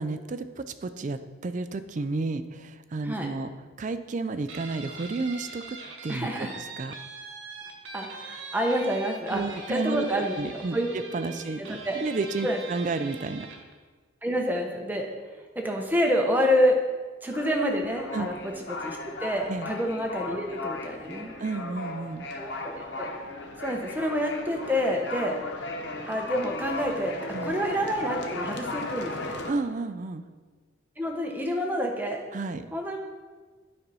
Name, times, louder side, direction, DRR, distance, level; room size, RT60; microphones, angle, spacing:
voice 1, 0.0-3.5 3.8-7.0 9.3-11.6 11.9-13.5 18.1-18.3 19.5-19.7 21.4-22.3 27.3-27.5 29.5-30.2 32.3-32.7, right 3 dB, 40° right, 10 dB, 0.4 m, -32 dB
Guitar, 4.5-13.7, right 3 dB, 65° right, 1.1 m, -42 dB
voice 2, 6.1-6.5 7.9-9.4 9.7-10.9 11.6-11.9 12.4-12.6 14.2-15.1 15.5-16.8 17.2-18.3 18.7-21.3 22.3-23.1 23.6-25.4 26.0-27.2 27.4-29.4 31.0-32.2 32.7-33.0, equal, 10° right, 1 dB, 0.9 m, -28 dB
sound 1, 17.3-29.5, left 2 dB, 55° left, 0.8 m, -36 dB
9.2 x 4.3 x 5.4 m, 1.4 s
head